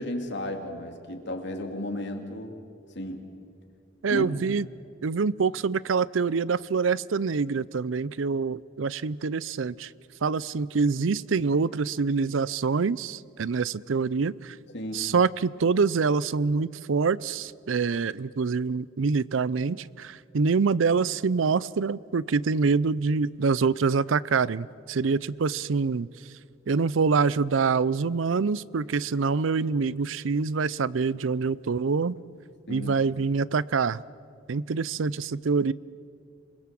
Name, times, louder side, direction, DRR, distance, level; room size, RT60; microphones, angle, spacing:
voice 1, 0.0-2.6 2.9-3.2 4.1-4.3 14.7-15.1 32.7-33.0, left 1 dB, 65° left, 4 dB, 2.7 m, -34 dB
voice 2, 4.0-4.7 5.0-9.9 10.2-14.6 14.9-26.1 26.7-32.2 32.7-34.0 34.5-35.7, right 5 dB, 80° right, 21 dB, 0.5 m, -25 dB
27.5 x 21.5 x 7.6 m, 2.4 s
head